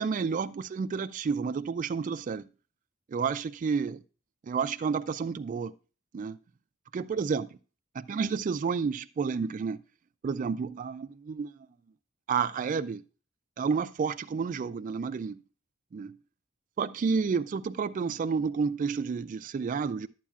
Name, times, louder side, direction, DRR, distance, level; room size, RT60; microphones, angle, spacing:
voice 1, 0.0-2.5 3.1-4.0 4.4-5.7 6.1-6.4 6.9-7.6 7.9-9.8 10.2-11.5 12.3-13.0 13.6-15.4 15.9-16.2 16.8-20.1, right 5 dB, 40° right, 0.3 m, -30 dB
11.0 x 8.5 x 2.4 m
head